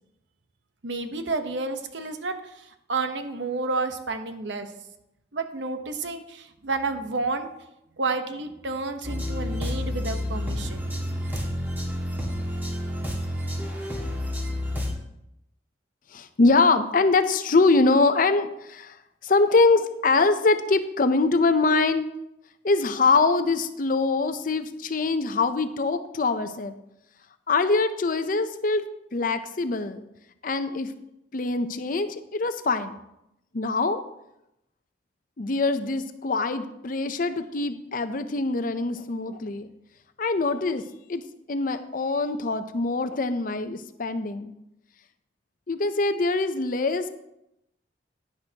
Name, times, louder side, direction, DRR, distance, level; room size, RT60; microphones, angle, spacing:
voice 1, 0.8-2.4 2.9-4.7 5.3-7.5 8.0-10.8, right 3 dB, 80° right, 7 dB, 0.9 m, -30 dB
sound 1, 9.0-14.9, left 1 dB, 10° right, 1.8 m, -29 dB
voice 2, 16.1-22.1 22.6-26.8 27.5-30.0 30.4-30.9 31.3-33.0 33.5-34.0 35.4-39.7 40.2-40.8 41.1-41.2 41.5-44.5 45.7-47.1, left 3 dB, 50° left, 10 dB, 0.6 m, -23 dB
10.5 x 10.5 x 2.9 m, 0.85 s
head